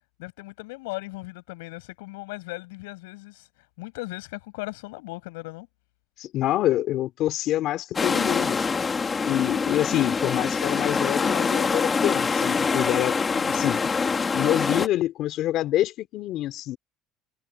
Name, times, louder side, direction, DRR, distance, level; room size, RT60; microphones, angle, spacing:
voice 1, 0.2-3.5 3.8-5.7 13.3-13.7, left 23 dB, 90° left, 7.6 m, -38 dB
voice 2, 6.2-8.6 9.2-13.2 13.5-13.9 14.3-16.8, left 14 dB, 65° left, 3.1 m, -26 dB
sound 1, 7.9-14.9, left 5 dB, 30° left, 2.2 m, -25 dB
supercardioid pair, 90°, 0 cm